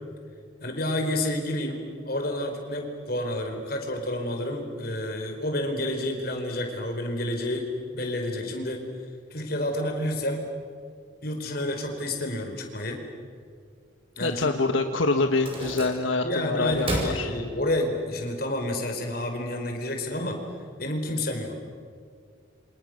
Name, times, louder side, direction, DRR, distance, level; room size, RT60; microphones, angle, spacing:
voice 1, 0.6-7.7 7.9-8.8 9.3-10.4 11.2-13.0 14.2-14.7 16.2-20.4 20.8-21.6, left 1 dB, 50° left, 3 dB, 4.5 m, -29 dB
voice 2, 14.2-17.3, left 3 dB, 85° left, 6 dB, 1.4 m, -25 dB
sound 1, 15.3-16.3 16.6-18.0, right 1 dB, 30° right, 5.4 m, -33 dB
29.0 x 26.5 x 6.6 m, 2.2 s
head